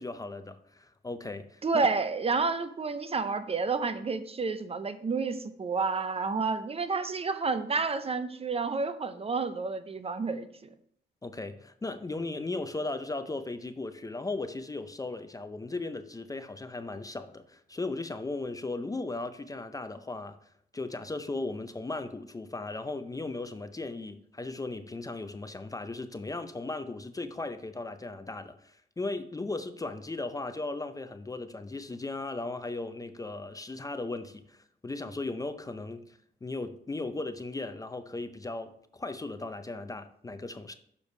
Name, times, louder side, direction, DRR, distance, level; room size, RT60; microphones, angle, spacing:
voice 1, 0.0-1.9 11.2-20.4 20.7-40.7, left 2 dB, 15° left, 0.5 m, -37 dB
voice 2, 1.6-10.7, right 4 dB, 30° right, 0.6 m, -30 dB
6.8 x 4.9 x 5.4 m
cardioid pair, 90°, 20 cm